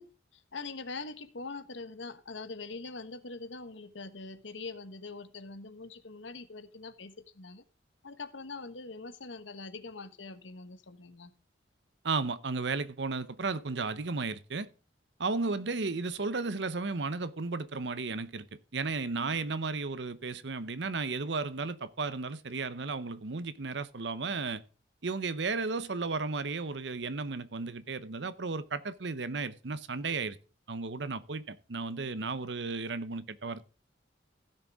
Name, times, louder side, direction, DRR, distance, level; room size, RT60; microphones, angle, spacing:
voice 1, 0.0-7.6 8.0-11.3, left 3 dB, 80° left, 1.2 m, -43 dB
voice 2, 12.0-14.7 15.2-18.5 18.7-24.6 25.0-30.4 30.7-33.6, right 4 dB, 70° right, 0.8 m, -34 dB
16.0 x 6.7 x 3.6 m
head